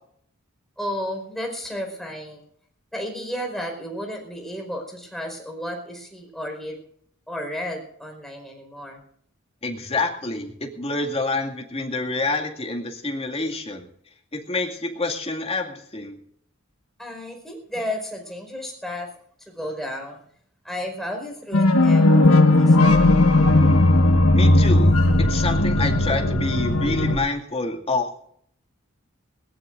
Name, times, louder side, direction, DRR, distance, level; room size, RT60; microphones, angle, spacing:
voice 1, 0.8-2.4 2.9-6.8 7.3-9.0 17.0-19.1 19.4-20.2 20.6-22.8, left 1 dB, ahead, 1 dB, 4.9 m, -33 dB
voice 2, 9.6-13.8 14.3-16.2 24.3-28.3, left 2 dB, 30° left, 2 dB, 2.3 m, -27 dB
sound 1, 21.5-27.2, left 2 dB, 85° left, 1.6 m, -16 dB
20.5 x 19.0 x 2.6 m, 0.66 s
head